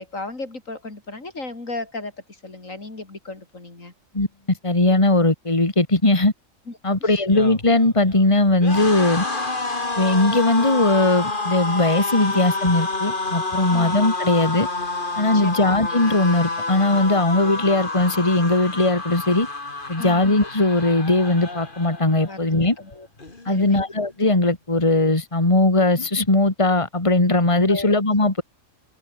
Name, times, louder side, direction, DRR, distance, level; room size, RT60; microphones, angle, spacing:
voice 1, 0.0-3.9 6.7-7.2 9.1-9.2 13.7-14.0 15.3-15.8 20.0-20.2 22.2-22.4 22.8-23.1 23.5-23.9 27.7-27.9, left 2 dB, 75° left, 4.6 m, -35 dB
voice 2, 4.1-6.3 6.8-9.2 10.0-14.7 15.2-19.5 19.9-22.8 23.5-28.4, left 2 dB, 25° left, 2.8 m, -19 dB
sound 1, 7.2-22.4 22.7-22.9 23.2-24.0, left 2 dB, 40° left, 3.0 m, -29 dB
omnidirectional pair, 1.4 m